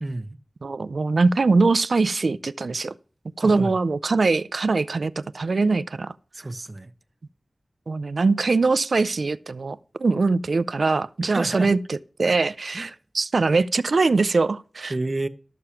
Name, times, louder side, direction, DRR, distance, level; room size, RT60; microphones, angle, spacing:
voice 1, 0.0-0.4 3.4-3.8 6.3-6.9 11.3-11.7 12.2-12.4 12.7-13.0 14.9-15.3, right 2 dB, 40° right, 0.8 m, -30 dB
voice 2, 0.6-2.9 3.4-6.1 7.9-14.9, right 3 dB, 85° right, 0.4 m, -22 dB
13.0 x 6.8 x 5.7 m
wide cardioid pair, 65°, 0 cm